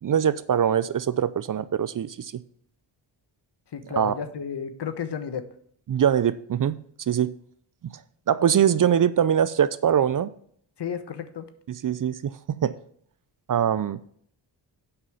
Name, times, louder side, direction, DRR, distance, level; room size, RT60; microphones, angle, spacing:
voice 1, 0.0-2.3 4.0-4.2 5.9-7.3 7.8-7.9 8.3-10.3 11.8-12.8 13.5-14.0, right 9 dB, 45° right, 16 dB, 0.5 m, -23 dB
voice 2, 3.7-5.5 10.8-11.5, left 7 dB, 60° left, 10 dB, 1.3 m, -32 dB
7.9 x 5.6 x 6.9 m, 0.63 s
cardioid pair, 65°, 47 cm